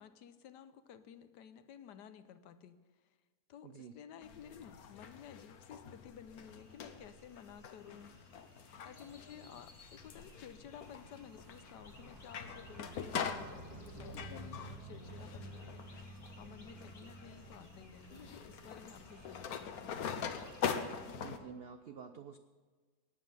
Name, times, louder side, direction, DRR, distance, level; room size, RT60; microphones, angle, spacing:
voice 1, 0.0-2.8 3.0-3.1 3.5-8.2 8.5-20.3, left 8 dB, 80° left, 12 dB, 1.4 m, -54 dB
voice 2, 3.6-3.9 21.1-22.4, right 6 dB, 85° right, 9 dB, 0.5 m, -49 dB
sound 1, 4.2-21.4, left 7 dB, 65° left, 1.3 m, -44 dB
sound 2, 6.5-21.1, right 2 dB, 65° right, 2.0 m, -55 dB
Birds in Spring, 8.9-20.9, left 2 dB, 30° left, 1.3 m, -62 dB
16.5 x 9.5 x 5.5 m, 1.4 s
omnidirectional pair, 1.8 m